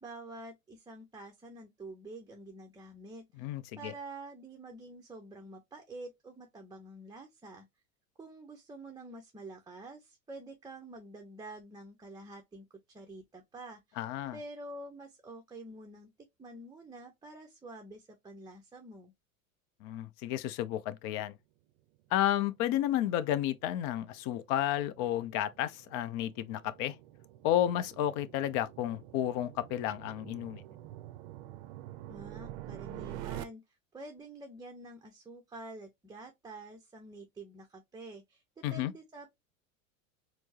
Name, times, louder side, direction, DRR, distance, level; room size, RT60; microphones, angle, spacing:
voice 1, 0.0-7.7 8.2-14.1 14.3-16.1 16.4-19.1 32.1-39.3, right 2 dB, 10° right, 0.6 m, -48 dB
voice 2, 3.4-3.9 14.0-14.4 19.8-21.3 22.1-27.0 27.4-30.6 38.6-38.9, left 12 dB, 50° left, 0.5 m, -32 dB
sound 1, 22.3-33.4, right 14 dB, 55° right, 0.5 m, -47 dB
4.4 x 2.0 x 2.8 m
hypercardioid pair, 90°, 41 cm